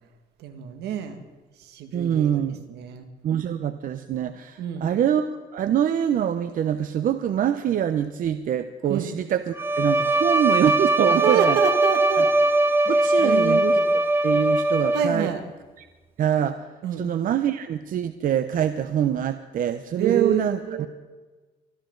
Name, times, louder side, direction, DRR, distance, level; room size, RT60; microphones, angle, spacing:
voice 1, 0.4-1.2 1.6-2.4 2.7-3.1 4.6-4.9 8.9-9.1 11.1-12.3 12.8-13.9 14.9-15.4 16.8-17.1 20.0-20.9, right 8 dB, 75° right, 7 dB, 1.9 m, -28 dB
voice 2, 1.9-2.6 3.2-11.6 12.2-12.3 12.9-15.3 15.8-15.9 16.2-16.6 17.0-20.9, right 9 dB, 55° right, 10 dB, 0.8 m, -25 dB
Bowed string instrument, 9.6-15.4, right 2 dB, 15° right, 0.8 m, -21 dB
24.5 x 14.0 x 3.9 m, 1.3 s
cardioid pair, 110°, 17 cm